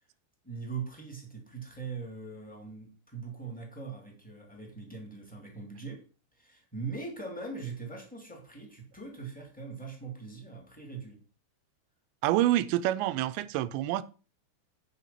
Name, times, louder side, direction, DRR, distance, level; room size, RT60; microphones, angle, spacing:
voice 1, 0.4-6.0 6.3-11.2, right 4 dB, 5° left, 1.4 m, -41 dB
voice 2, 12.2-14.0, right 14 dB, 85° right, 2.9 m, -27 dB
9.8 x 5.4 x 5.7 m
omnidirectional pair, 5.1 m